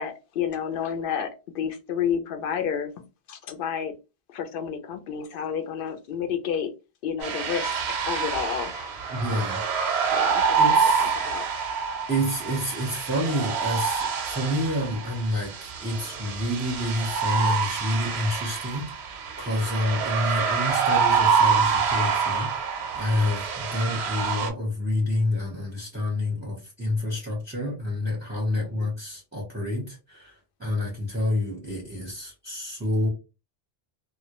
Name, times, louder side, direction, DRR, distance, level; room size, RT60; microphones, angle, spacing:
voice 1, 0.0-3.9 4.3-6.7 7.0-9.4 10.1-11.5 28.5-28.9, left 8 dB, 65° left, 6 dB, 0.7 m, -31 dB
sound 1, 7.2-24.5, right 6 dB, 85° right, 0.8 m, -26 dB
voice 2, 9.1-9.6 10.6-11.1 12.1-30.3 30.6-33.1, left 1 dB, 15° right, -2 dB, 0.6 m, -28 dB
2.1 x 2.1 x 2.8 m, 0.28 s
omnidirectional pair, 1.1 m